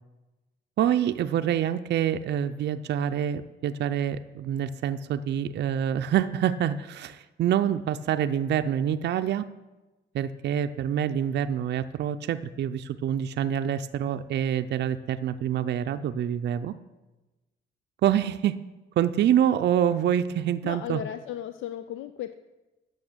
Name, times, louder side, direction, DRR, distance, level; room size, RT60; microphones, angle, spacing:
voice 1, 0.8-9.5 10.1-16.7 18.0-18.6 19.0-21.0, right 10 dB, 60° right, 9 dB, 0.4 m, -26 dB
voice 2, 20.6-22.3, left 11 dB, 80° left, 10 dB, 0.4 m, -35 dB
8.6 x 6.2 x 6.7 m, 1.1 s
cardioid pair, 90°, 20 cm